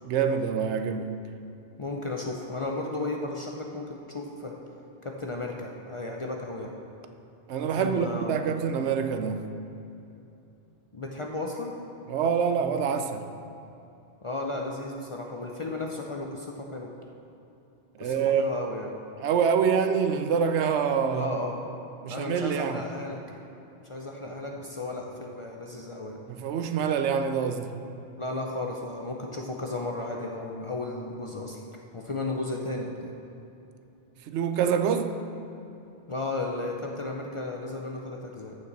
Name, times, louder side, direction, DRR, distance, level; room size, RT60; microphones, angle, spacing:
voice 1, 0.0-1.2 7.5-9.5 12.1-13.4 18.0-18.4 19.2-21.3 22.0-22.8 26.3-27.8 34.3-35.2, right 7 dB, 80° right, 0.9 m, -26 dB
voice 2, 1.8-4.6 5.0-6.7 7.8-8.4 10.9-11.8 14.2-16.9 18.0-18.9 21.1-21.6 22.1-23.2 23.8-26.2 28.2-31.6 31.9-33.1 36.1-38.6, left 2 dB, 35° left, 0.5 m, -34 dB
14.0 x 5.8 x 4.0 m
omnidirectional pair, 1.2 m